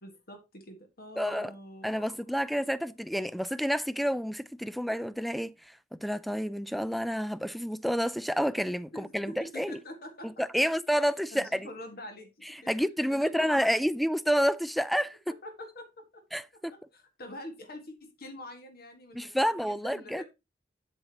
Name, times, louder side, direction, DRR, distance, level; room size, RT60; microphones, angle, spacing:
voice 1, 0.0-2.1 8.9-10.4 11.3-12.7 13.1-13.9 15.3-16.2 16.7-19.3 19.6-20.2, left 1 dB, 55° left, 1.7 m, -45 dB
voice 2, 1.2-1.5 1.8-5.5 6.0-9.8 10.2-11.7 12.7-15.2 16.3-16.7 19.1-20.2, equal, ahead, 0.3 m, -29 dB
7.9 x 7.8 x 2.9 m
head